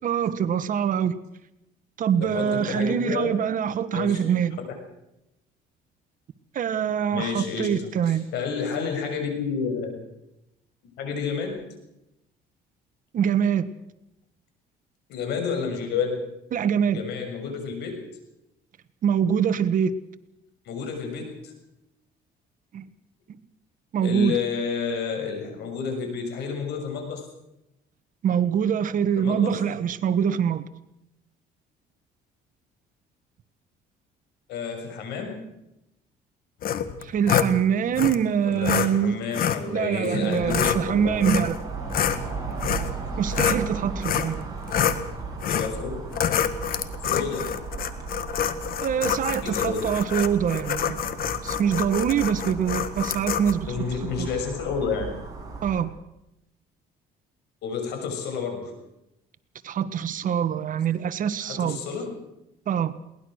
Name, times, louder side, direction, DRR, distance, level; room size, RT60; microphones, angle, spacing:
voice 1, 0.0-1.1 2.0-4.6 6.5-8.3 13.1-13.7 16.5-17.0 19.0-20.0 22.7-22.8 23.3-23.4 23.9-24.4 28.2-30.7 37.0-39.2 39.7-41.6 43.2-44.5 48.8-51.0 51.4-53.7 54.0-54.3 55.6-55.9 59.6-61.8 62.7-62.9, right 8 dB, 50° right, 13 dB, 1.4 m, -24 dB
voice 2, 2.2-3.3 3.9-4.2 7.1-9.9 11.0-11.8 15.1-16.2 16.9-18.1 20.6-21.5 24.0-27.2 29.2-29.7 34.5-35.5 38.4-41.2 45.4-45.9 47.0-47.6 49.4-50.0 53.7-55.1 57.6-58.7 61.4-62.2, left 5 dB, 80° left, 5 dB, 6.5 m, -30 dB
sound 1, 36.6-37.5 37.9-38.2 38.6-38.9 39.3-39.6 40.3-40.8 41.2-41.6 41.9-43.6 44.0-44.3 44.7-45.0 45.4-45.7 46.1-53.5, left 9 dB, 60° left, 1.7 m, -26 dB
sound 2, 40.4-55.8, right 4 dB, 20° right, 6.7 m, -36 dB
22.0 x 19.0 x 6.4 m, 0.87 s
cardioid pair, 110°, 17 cm